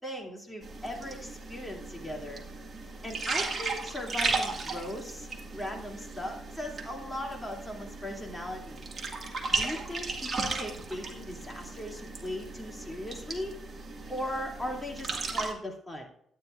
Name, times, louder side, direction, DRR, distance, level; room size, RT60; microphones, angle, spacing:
voice 1, 0.0-2.4 3.0-8.8 9.5-13.6 14.1-16.1, left 1 dB, 10° left, -1 dB, 2.7 m, -38 dB
sound 1, 0.6-15.5, right 3 dB, 40° right, 2.0 m, -36 dB
12.0 x 9.4 x 2.5 m, 0.68 s
cardioid pair, 90°, 0 cm